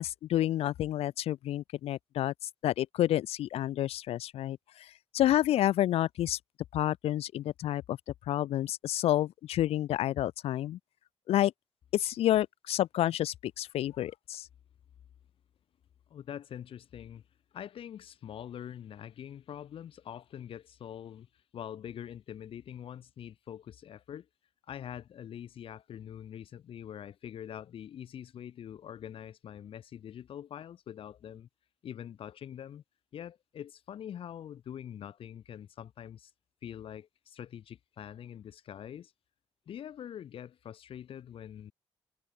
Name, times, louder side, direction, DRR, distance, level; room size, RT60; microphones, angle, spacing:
voice 1, 0.0-2.3 2.6-4.9 5.1-6.4 6.7-8.0 8.3-10.8 11.3-11.5 11.9-14.5, left 13 dB, 85° left, 0.4 m, -29 dB
voice 2, 16.1-17.2 17.5-24.3 24.7-31.5 31.8-32.8 33.1-36.3 36.6-39.1 39.7-41.7, left 9 dB, 65° left, 3.9 m, -44 dB
wide cardioid pair, 165°, 10 cm